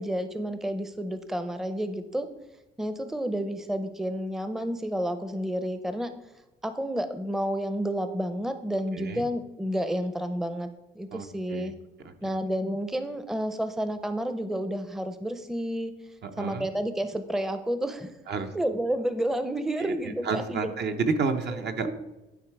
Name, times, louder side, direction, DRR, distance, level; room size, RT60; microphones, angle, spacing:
voice 1, 0.0-2.3 2.8-6.1 6.6-10.7 10.9-11.7 12.2-15.9 16.4-18.1 18.5-20.7 21.8-21.9, equal, ahead, 10 dB, 0.6 m, -30 dB
voice 2, 8.9-9.3 11.1-11.7 12.0-12.1 16.2-16.7 18.3-18.5 19.8-21.9, right 4 dB, 55° right, 7 dB, 0.9 m, -30 dB
11.0 x 4.6 x 4.6 m, 1.0 s
cardioid pair, 90°, 20 cm